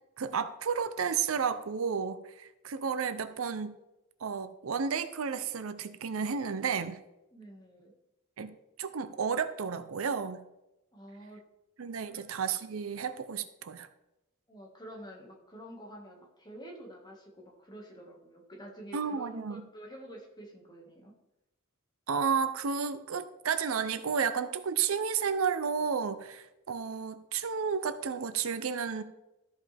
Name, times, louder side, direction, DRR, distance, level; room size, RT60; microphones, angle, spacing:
voice 1, 0.2-3.7 4.2-7.0 8.4-8.5 8.8-10.4 11.8-13.9 18.9-19.6 22.1-29.0, right 6 dB, 85° right, 11 dB, 0.6 m, -32 dB
voice 2, 7.3-7.9 10.9-11.4 12.1-12.2 14.5-21.1, right 1 dB, 20° left, 0 dB, 1.7 m, -48 dB
13.5 x 5.4 x 3.4 m, 0.93 s
head